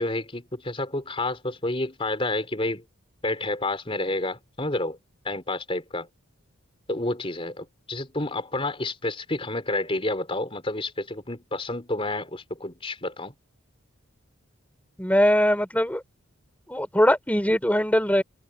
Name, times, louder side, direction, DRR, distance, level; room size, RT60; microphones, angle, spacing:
voice 1, 0.0-2.8 3.2-5.0 5.2-6.1 6.9-13.3, left 2 dB, 25° left, 3.7 m, -29 dB
voice 2, 15.0-16.0 16.7-18.2, equal, 5° left, 4.3 m, -21 dB
head